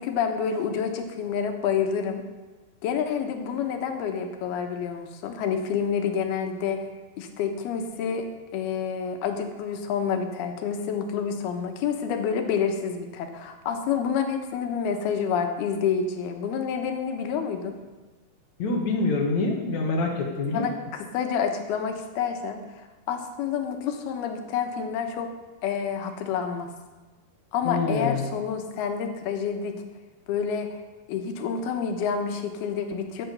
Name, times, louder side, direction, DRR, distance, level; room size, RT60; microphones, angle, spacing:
voice 1, 0.0-2.2 2.8-6.8 7.2-8.2 8.5-17.8 20.5-22.6 23.1-25.3 25.6-26.7 27.5-29.7 30.3-30.7 31.1-33.3, left 7 dB, 90° left, 5 dB, 3.2 m, -28 dB
voice 2, 18.6-20.7 27.6-28.2, left 3 dB, 55° left, 1 dB, 2.4 m, -26 dB
14.0 x 9.0 x 6.7 m, 1.2 s
omnidirectional pair, 4.3 m